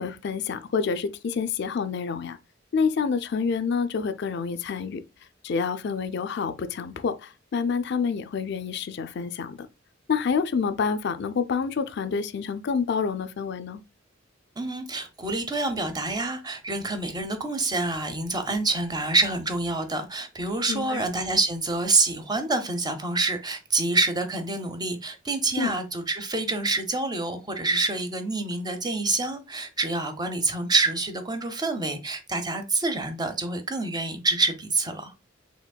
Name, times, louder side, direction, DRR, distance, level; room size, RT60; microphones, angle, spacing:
voice 1, 0.0-2.4 2.7-5.0 5.4-9.7 10.1-13.8 20.7-21.0 25.6-25.7, left 5 dB, 60° left, 0.4 m, -28 dB
voice 2, 14.6-35.1, right 2 dB, 20° right, 0.7 m, -27 dB
5.0 x 3.5 x 2.2 m
head